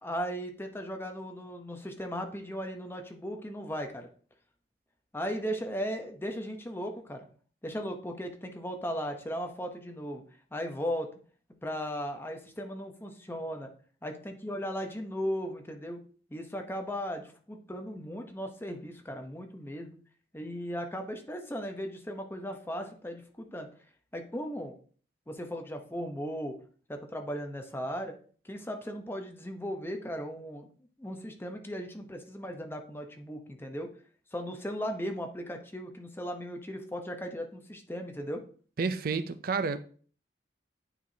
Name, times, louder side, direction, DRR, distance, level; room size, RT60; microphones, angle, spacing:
voice 1, 0.0-4.1 5.1-7.3 7.6-10.2 10.5-11.1 11.6-13.7 14.0-16.0 16.3-20.0 20.3-23.7 24.1-24.7 25.3-26.5 26.9-28.1 28.4-30.7 31.0-33.9 34.3-38.4, equal, 15° left, 0.8 m, -37 dB
voice 2, 38.8-39.8, right 4 dB, 55° right, 0.5 m, -30 dB
8.9 x 4.6 x 2.8 m
head